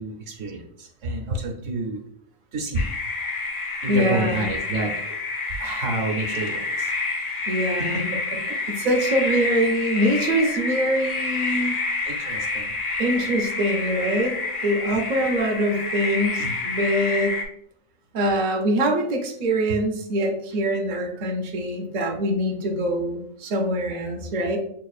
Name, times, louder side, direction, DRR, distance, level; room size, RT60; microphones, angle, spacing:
voice 1, 0.0-2.0 2.5-2.9 3.8-4.9 5.6-6.9 7.3-8.0 8.3-8.4 12.0-12.7 16.4-16.5 19.7-19.8, right 2 dB, 70° right, 2 dB, 1.1 m, -29 dB
sound 1, 2.7-17.4, left 3 dB, 45° left, 0.5 m, -28 dB
voice 2, 3.9-4.5 7.5-8.2 8.7-11.8 13.0-14.3 14.6-17.4 18.1-24.6, equal, 45° right, 1 dB, 0.6 m, -24 dB
5.7 x 2.4 x 2.4 m, 0.67 s
omnidirectional pair, 1.4 m